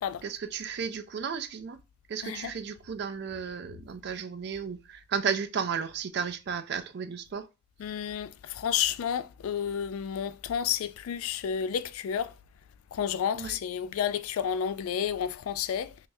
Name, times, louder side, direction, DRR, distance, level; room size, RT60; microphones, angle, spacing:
voice 1, 0.2-1.8 2.1-4.8 5.1-7.5 13.3-13.6, right 6 dB, 50° right, 0.3 m, -33 dB
voice 2, 2.2-2.5 7.8-12.3 12.9-15.9, left 8 dB, 90° left, 0.3 m, -31 dB
3.4 x 3.3 x 2.6 m
head